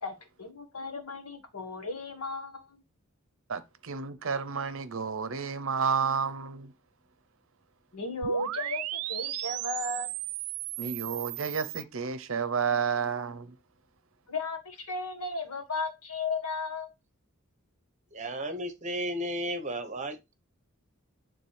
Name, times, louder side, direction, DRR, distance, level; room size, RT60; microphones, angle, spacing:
voice 1, 0.0-2.8 7.9-10.1 14.3-16.9, left 3 dB, 85° left, 1.6 m, -35 dB
voice 2, 3.5-6.7 10.8-13.5, right 6 dB, 60° right, 0.7 m, -31 dB
sound 1, 8.2-11.8, right 16 dB, 80° right, 0.3 m, -35 dB
voice 3, 18.1-20.3, equal, 30° right, 1.0 m, -34 dB
9.5 x 3.7 x 3.3 m
head